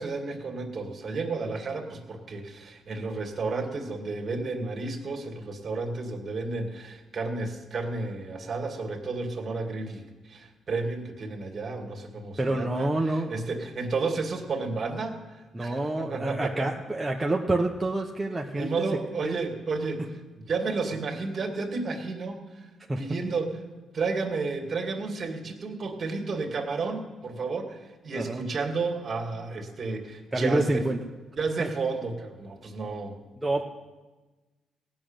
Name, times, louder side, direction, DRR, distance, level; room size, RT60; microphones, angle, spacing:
voice 1, 0.0-16.7 18.5-20.1 20.5-22.7 23.0-23.6 23.9-30.9 31.4-33.2, right 3 dB, 45° right, 4 dB, 2.2 m, -32 dB
voice 2, 12.4-13.6 15.5-18.7 19.2-19.3 22.9-23.0 28.1-28.4 30.3-31.0 31.6-31.7 33.4-33.6, right 2 dB, 15° right, 0 dB, 0.9 m, -27 dB
16.5 x 6.5 x 9.0 m, 1.2 s
cardioid pair, 90°, 0 cm